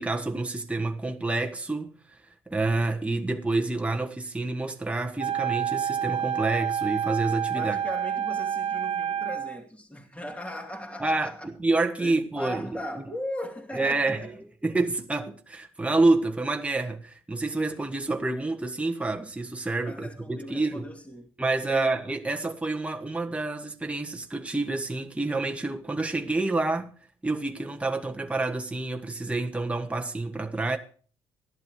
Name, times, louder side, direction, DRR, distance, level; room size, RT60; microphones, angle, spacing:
voice 1, 0.0-7.8 11.0-13.0 13.7-20.9 21.4-26.9 27.2-30.8, right 2 dB, 10° right, 1.4 m, -28 dB
Wind instrument woodwind instrument, 5.2-9.6, right 9 dB, 55° right, 0.7 m, -28 dB
voice 2, 7.5-11.5 12.0-14.3 19.8-21.3 21.7-22.0, equal, 10° left, 2.8 m, -38 dB
14.0 x 11.0 x 4.7 m
hypercardioid pair, 50°, 13 cm